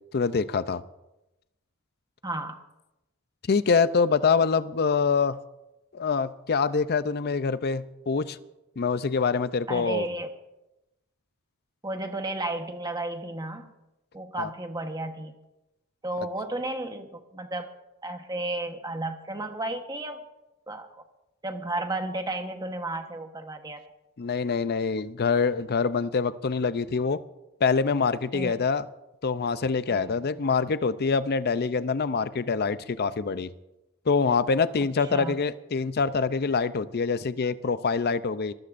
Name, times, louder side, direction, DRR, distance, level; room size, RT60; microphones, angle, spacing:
voice 1, 0.1-0.8 3.5-5.4 5.9-8.4 8.8-10.1 14.4-14.5 24.2-27.2 27.6-28.9 29.2-33.5 34.1-38.5, left 5 dB, 45° left, 14 dB, 0.5 m, -25 dB
voice 2, 2.2-2.6 9.7-10.3 11.8-13.7 14.1-15.3 16.0-17.7 18.0-20.2 20.7-20.9 21.4-23.8 28.3-28.6 29.9-30.3 35.1-35.4, right 2 dB, 15° right, 5 dB, 1.1 m, -33 dB
23.0 x 15.0 x 2.6 m, 0.97 s
head